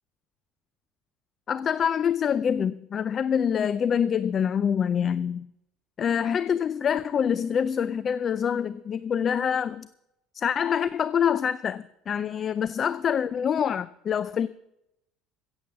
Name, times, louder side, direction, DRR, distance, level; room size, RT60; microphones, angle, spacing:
voice 1, 1.5-5.5 6.0-9.9 10.3-14.5, left 8 dB, 35° left, 0.4 m, -26 dB
16.0 x 7.9 x 7.2 m
supercardioid pair, 115°, 0 cm